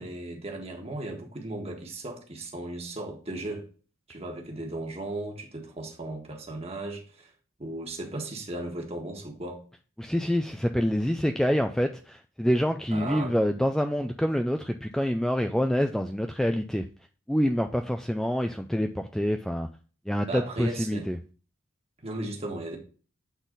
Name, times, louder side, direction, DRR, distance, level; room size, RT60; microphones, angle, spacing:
voice 1, 0.0-3.7 4.1-7.3 7.6-9.6 12.9-13.3 20.3-21.1 22.0-22.8, right 2 dB, 30° right, 1.6 m, -36 dB
voice 2, 10.0-16.8 17.3-19.7 20.1-21.2, equal, ahead, 0.3 m, -26 dB
8.2 x 4.0 x 3.9 m
head